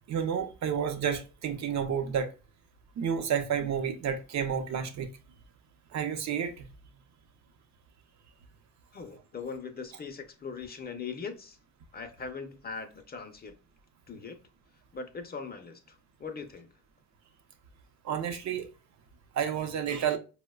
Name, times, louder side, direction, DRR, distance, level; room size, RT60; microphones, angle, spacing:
voice 1, 0.1-2.3 3.0-5.1 5.9-6.7 18.0-18.7 19.4-20.2, right 8 dB, 65° right, 0.6 m, -30 dB
voice 2, 8.9-11.6 11.9-13.5 14.1-14.4 14.9-16.7, left 5 dB, 30° left, 0.5 m, -40 dB
4.5 x 2.1 x 2.2 m
cardioid pair, 90°, 30 cm